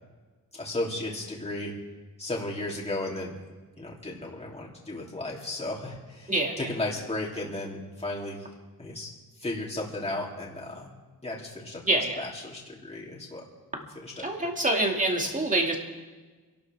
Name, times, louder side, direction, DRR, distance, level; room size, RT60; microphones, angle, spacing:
voice 1, 0.5-1.7 2.2-3.4 3.8-8.5 8.8-9.1 9.4-11.0 11.2-13.4 13.8-14.5 15.2-15.3, left 2 dB, 15° left, -4 dB, 3.1 m, -35 dB
voice 2, 6.3-6.7 11.9-12.2 14.2-15.8, right 2 dB, 20° right, 1 dB, 2.3 m, -26 dB
26.5 x 12.0 x 3.6 m, 1.3 s
wide cardioid pair, 120°, 40 cm